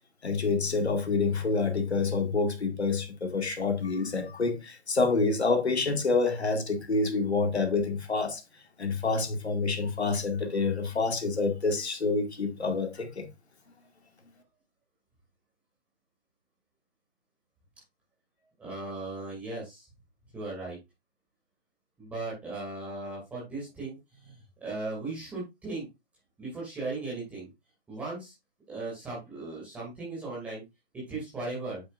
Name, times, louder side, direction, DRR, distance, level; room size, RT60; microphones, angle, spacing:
voice 1, 0.2-8.4 8.8-13.3, left 4 dB, 75° left, 2.2 m, -27 dB
voice 2, 18.6-19.9 20.3-20.8 22.0-25.9 26.4-27.5 27.9-28.3 28.7-30.6 30.9-31.8, right 3 dB, 5° right, 2.4 m, -37 dB
8.4 x 7.2 x 2.5 m
hypercardioid pair, 165°, 33 cm